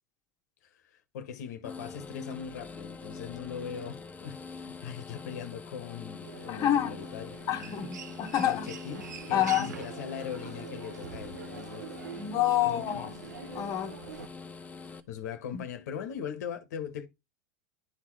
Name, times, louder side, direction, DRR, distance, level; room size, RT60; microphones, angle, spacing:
voice 1, 0.6-7.7 8.4-11.9 12.1-12.2 12.6-13.1 15.1-17.1, left 7 dB, 75° left, 1.3 m, -40 dB
sound 1, 1.6-15.0, left 4 dB, 15° left, 1.1 m, -44 dB
Human voice, 6.2-14.3, right 7 dB, 85° right, 0.9 m, -44 dB
voice 2, 6.5-7.0 7.5-8.6 9.3-9.8 12.2-13.1 13.5-13.9 15.5-15.6, left 11 dB, 40° left, 1.4 m, -28 dB
11.5 x 3.9 x 3.2 m
hypercardioid pair, 95°, 9 cm